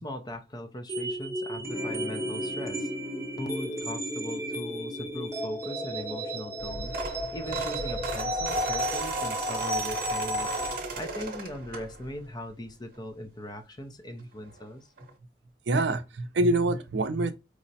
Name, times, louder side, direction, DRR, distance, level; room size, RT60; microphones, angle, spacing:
voice 1, 0.0-2.9 3.4-10.6 10.9-14.9, equal, 25° left, 0.5 m, -39 dB
sound 1, 0.9-10.8, equal, 15° right, 0.7 m, -33 dB
Guitar, 1.5-8.7, left 3 dB, 40° left, 1.0 m, -46 dB
sound 2, 6.6-12.2 12.7-13.0 14.2-14.3 14.5-14.6 15.0-15.1, right 2 dB, 50° right, 0.8 m, -36 dB
voice 2, 15.7-17.3, right 2 dB, 75° right, 0.5 m, -25 dB
4.7 x 2.1 x 2.7 m
head